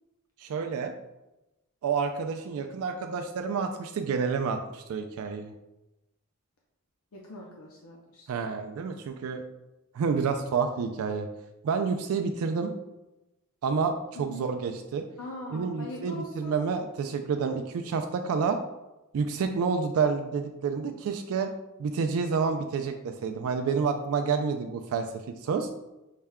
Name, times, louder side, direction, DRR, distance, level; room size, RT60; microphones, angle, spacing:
voice 1, 0.4-0.9 1.8-5.5 8.3-9.4 9.9-11.3 11.6-12.7 13.6-15.0 15.5-18.6 19.1-21.5 21.8-25.1 25.4-25.7, right 5 dB, 70° right, 6 dB, 0.3 m, -29 dB
voice 2, 7.1-8.3 14.1-14.5 15.2-16.6, left 1 dB, 70° left, -2 dB, 0.6 m, -41 dB
5.6 x 2.2 x 3.5 m, 0.97 s
head